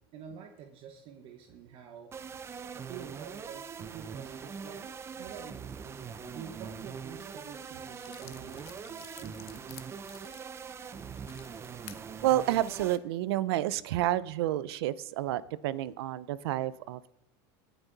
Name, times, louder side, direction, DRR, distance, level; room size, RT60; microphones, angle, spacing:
voice 1, 0.1-2.1 2.7-4.9 5.2-5.7 6.3-9.4, right 8 dB, 45° right, 5 dB, 1.1 m, -47 dB
sound 1, 2.1-13.0, right 6 dB, 20° right, 0.5 m, -42 dB
sound 2, 7.5-7.6 8.0-12.0 12.6-12.9, left 14 dB, 80° left, 0.9 m, -51 dB
voice 2, 12.2-17.1, right 14 dB, 85° right, 18 dB, 0.5 m, -30 dB
18.0 x 6.1 x 4.0 m, 0.84 s
supercardioid pair, 140°, 13 cm